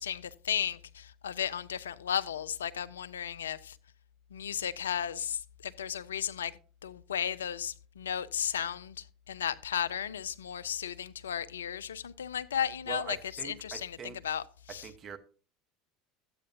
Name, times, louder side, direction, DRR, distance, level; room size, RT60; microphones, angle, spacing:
voice 1, 0.0-3.8 4.3-13.2 13.4-14.9, left 9 dB, 85° left, 0.4 m, -35 dB
voice 2, 12.9-14.4 14.7-15.2, right 7 dB, 35° right, 1.1 m, -43 dB
13.0 x 8.6 x 2.8 m
hypercardioid pair, 75°, 0 cm